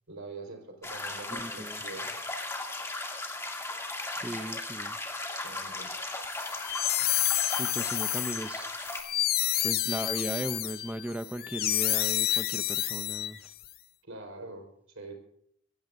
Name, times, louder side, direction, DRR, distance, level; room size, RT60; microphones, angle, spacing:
voice 1, 0.1-2.2 4.2-4.4 5.4-6.0 14.1-14.7 14.9-15.1, right 3 dB, 90° right, 3 dB, 4.2 m, -44 dB
sound 1, 0.8-9.0, left 2 dB, 15° left, 2.4 m, -37 dB
voice 2, 1.3-1.8 4.0-5.0 7.6-8.7 9.6-13.5, right 1 dB, 10° right, 10 dB, 0.5 m, -37 dB
sound 2, 6.4-13.7, left 14 dB, 50° left, 0.5 m, -29 dB
26.5 x 16.0 x 2.6 m, 0.69 s
head